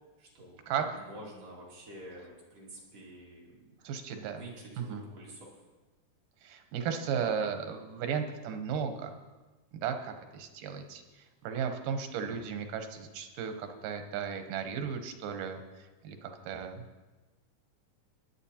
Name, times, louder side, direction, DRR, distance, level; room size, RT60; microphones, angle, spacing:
voice 1, 0.2-3.8 4.3-5.5, right 1 dB, 55° right, -4 dB, 3.1 m, -48 dB
voice 2, 3.8-4.4 4.8-5.0 6.4-9.1 9.8-11.0 11.4-16.8, right 7 dB, 90° right, 6 dB, 2.5 m, -35 dB
18.0 x 10.5 x 2.9 m, 1.2 s
omnidirectional pair, 3.6 m